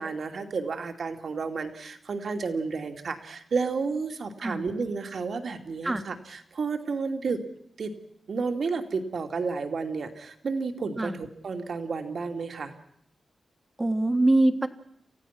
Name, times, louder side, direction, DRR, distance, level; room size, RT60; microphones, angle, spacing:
voice 1, 0.0-7.4 7.8-7.9 8.3-12.7, right 4 dB, 60° right, 5 dB, 2.7 m, -31 dB
voice 2, 13.8-14.7, right 2 dB, 20° right, 8 dB, 1.7 m, -23 dB
29.5 x 16.0 x 6.0 m, 0.72 s
wide cardioid pair, 135°, 0 cm